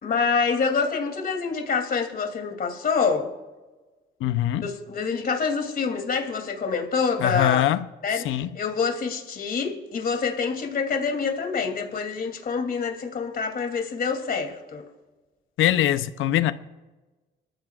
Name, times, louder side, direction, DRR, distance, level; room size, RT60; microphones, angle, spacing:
voice 1, 0.0-3.3 4.6-7.6 8.0-14.8, left 5 dB, 50° left, 2.9 m, -26 dB
voice 2, 4.2-4.7 7.2-7.9 8.1-8.5 15.6-16.5, left 13 dB, 85° left, 0.7 m, -22 dB
24.0 x 14.5 x 2.5 m
cardioid pair, 90°, 20 cm